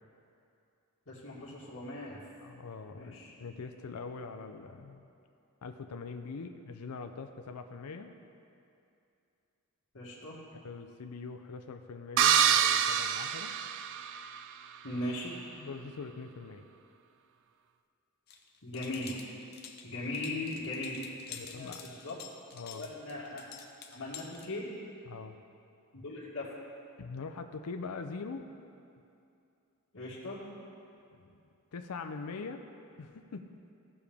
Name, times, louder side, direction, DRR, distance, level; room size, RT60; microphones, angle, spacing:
voice 1, 1.1-2.2 3.0-3.3 9.9-10.4 14.8-15.4 18.6-19.1 19.8-22.2 22.7-23.4 23.9-24.7 25.9-26.5 29.9-30.4, left 1 dB, 65° left, -11 dB, 1.9 m, -39 dB
voice 2, 2.4-5.1 5.6-8.1 10.5-13.6 15.6-16.7 21.3-21.9 22.5-22.9 25.1-25.4 27.0-28.5 31.1-31.3 31.7-32.6 33.0-33.5, left 4 dB, 85° left, 7 dB, 0.5 m, -43 dB
sound 1, 12.2-14.4, right 9 dB, 55° right, 0.3 m, -26 dB
sound 2, 18.3-24.5, left 7 dB, 45° left, 0.7 m, -49 dB
15.5 x 6.9 x 3.5 m, 2.6 s
head